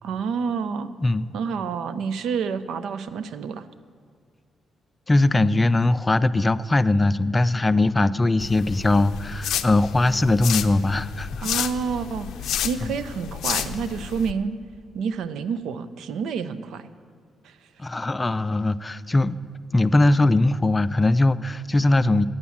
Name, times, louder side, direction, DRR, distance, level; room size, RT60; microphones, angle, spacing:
voice 1, 0.0-0.9 1.3-3.7 11.4-14.6 14.9-16.9 17.4-17.6, right 6 dB, 80° right, 14 dB, 0.5 m, -29 dB
voice 2, 5.1-11.7 12.8-13.0 17.8-19.4 19.7-22.3, left 2 dB, 20° left, 16 dB, 0.3 m, -20 dB
sound 1, 8.4-14.3, left 10 dB, 85° left, 0.4 m, -31 dB
9.4 x 7.1 x 8.4 m, 2.2 s
cardioid pair, 95°, 0 cm